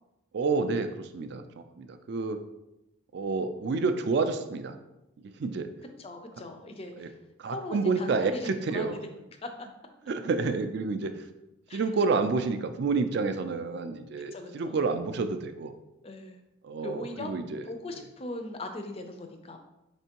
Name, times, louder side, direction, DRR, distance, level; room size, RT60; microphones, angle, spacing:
voice 1, 0.3-2.4 3.1-4.8 5.2-5.7 7.0-7.1 7.4-9.0 10.1-11.3 11.7-15.7 16.6-17.6, right 4 dB, 50° right, 9 dB, 0.3 m, -29 dB
voice 2, 6.0-7.2 7.5-9.0 9.4-9.5 11.7-11.8 14.3-14.8 16.0-16.4 16.8-17.3 17.6-19.6, left 2 dB, 30° left, 6 dB, 0.4 m, -39 dB
4.4 x 3.3 x 2.8 m, 0.93 s
head